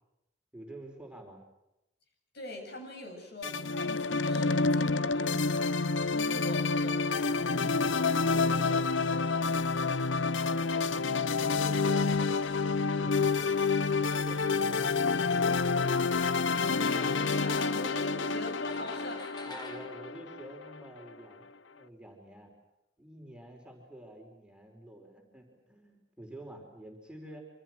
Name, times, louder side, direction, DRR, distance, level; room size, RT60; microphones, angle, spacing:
voice 1, 0.5-1.4 10.4-11.1 11.6-12.5 12.9-13.6 13.9-15.5 19.4-22.5 23.0-27.5, right 1 dB, 5° right, 1 dB, 4.8 m, -48 dB
voice 2, 2.3-5.8 6.1-7.9 8.2-9.0 16.7-19.6, left 1 dB, 55° left, 2 dB, 7.9 m, -43 dB
sound 1, 3.4-20.8, left 4 dB, 70° left, 0.8 m, -28 dB
sound 2, 18.6-21.2, left 3 dB, 20° left, 2.2 m, -49 dB
27.5 x 25.5 x 6.2 m, 0.89 s
head